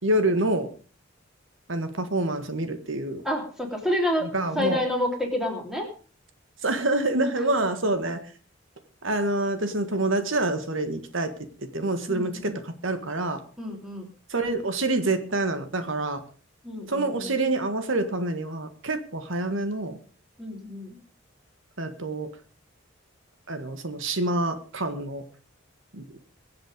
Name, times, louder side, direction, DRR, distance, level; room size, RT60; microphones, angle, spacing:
voice 1, 0.0-0.7 1.7-3.2 4.3-4.8 6.6-8.2 9.0-11.3 11.7-13.4 14.3-16.2 16.9-20.0 21.8-22.3 23.5-25.2 25.9-26.0, right 2 dB, 70° right, 8 dB, 1.8 m, -27 dB
voice 2, 3.2-4.3 4.5-5.9 12.1-12.6 13.6-14.1 16.6-17.3 20.4-21.0, left 1 dB, ahead, 1 dB, 3.3 m, -29 dB
23.0 x 7.8 x 5.2 m, 0.39 s
head